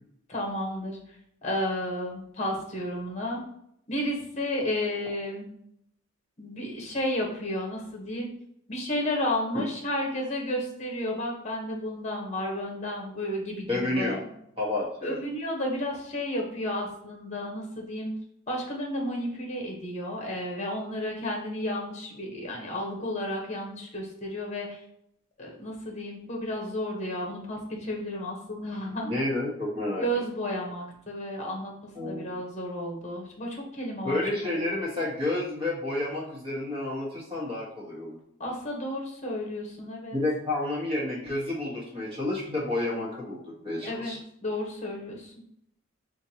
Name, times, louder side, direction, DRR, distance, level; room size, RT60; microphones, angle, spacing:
voice 1, 0.3-1.0 1.4-3.4 3.9-5.5 6.4-8.3 8.7-14.2 15.0-18.1 18.5-24.8 25.4-29.1 30.0-31.7 32.0-34.2 38.4-40.2 43.8-45.3, left 1 dB, 30° left, 0 dB, 1.0 m, -32 dB
voice 2, 13.7-14.2 14.6-15.2 29.0-30.1 31.9-32.2 34.0-38.2 40.1-44.2, left 2 dB, 25° right, -5 dB, 1.5 m, -30 dB
5.7 x 2.6 x 2.9 m, 0.74 s
head